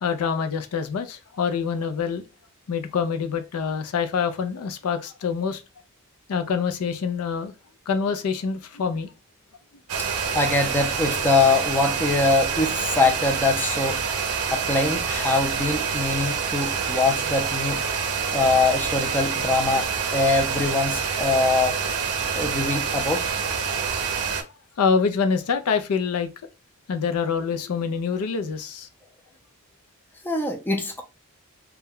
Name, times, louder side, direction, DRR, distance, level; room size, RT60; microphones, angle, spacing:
voice 1, 0.0-2.2 2.7-5.6 6.3-7.5 7.9-9.1 24.8-26.3 26.9-28.9, left 6 dB, 75° left, 0.4 m, -25 dB
sound 1, 9.9-24.4, right 6 dB, 70° right, 0.6 m, -27 dB
voice 2, 10.3-14.0 14.5-17.8 18.3-21.8 22.4-23.2 30.2-31.0, left 3 dB, 10° left, 0.4 m, -23 dB
2.2 x 2.1 x 3.5 m
head